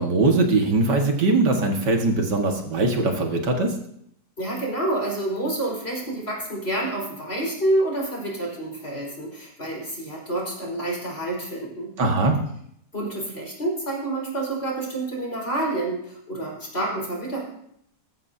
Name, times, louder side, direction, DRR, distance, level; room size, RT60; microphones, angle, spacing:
voice 1, 0.0-3.7 12.0-12.4, right 3 dB, 85° right, 2 dB, 2.5 m, -21 dB
voice 2, 4.4-11.9 12.9-17.4, right 1 dB, 35° left, -3 dB, 5.2 m, -28 dB
19.5 x 14.5 x 2.8 m, 0.71 s
omnidirectional pair, 1.8 m